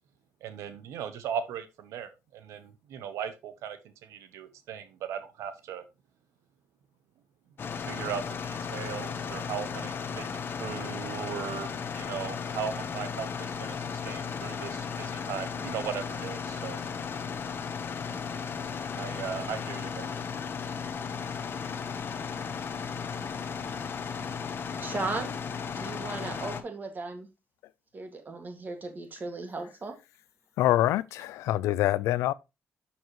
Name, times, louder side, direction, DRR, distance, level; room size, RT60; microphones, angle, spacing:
voice 1, 0.4-5.8 7.7-10.3 10.6-16.8 19.0-20.2, right 8 dB, 85° right, 0.9 m, -38 dB
sound 1, 7.6-26.6, left 6 dB, 50° left, 1.0 m, -35 dB
voice 2, 24.8-25.3 25.8-27.3 27.9-30.0, right 3 dB, 40° right, 2.0 m, -36 dB
voice 3, 30.6-32.3, left 14 dB, 90° left, 0.3 m, -25 dB
7.1 x 6.3 x 3.1 m
cardioid pair, 80°, 5 cm